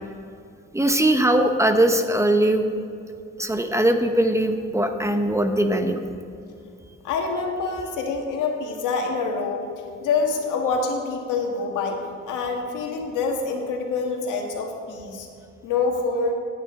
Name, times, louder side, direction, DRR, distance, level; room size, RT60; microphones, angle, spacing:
voice 1, 0.7-2.6 3.4-6.0, right 1 dB, 10° right, 6 dB, 0.9 m, -20 dB
voice 2, 7.0-9.7 10.0-12.0 12.3-15.3 15.6-16.3, left 4 dB, 90° left, 2 dB, 1.8 m, -26 dB
16.0 x 9.1 x 3.8 m, 2.5 s
cardioid pair, 90°, 30 cm